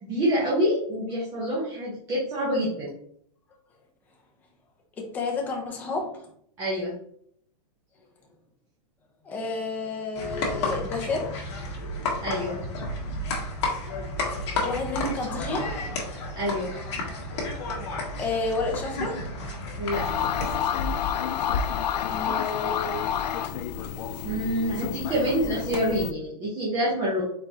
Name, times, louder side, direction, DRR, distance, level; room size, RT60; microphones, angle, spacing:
voice 1, 0.0-2.9 6.6-6.9 12.2-12.6 16.3-16.7 19.8-20.1 24.2-27.2, equal, 15° right, -6 dB, 1.0 m, -26 dB
voice 2, 5.0-6.3 9.2-11.5 14.6-16.0 18.2-19.3 22.0-23.2, left 3 dB, 10° left, 0 dB, 0.6 m, -31 dB
sound 1, 10.2-20.6, left 2 dB, 45° left, 1.4 m, -32 dB
sound 2, 19.9-26.1, left 8 dB, 80° left, 0.5 m, -29 dB
4.5 x 4.1 x 2.7 m, 0.66 s
supercardioid pair, 170°, 21 cm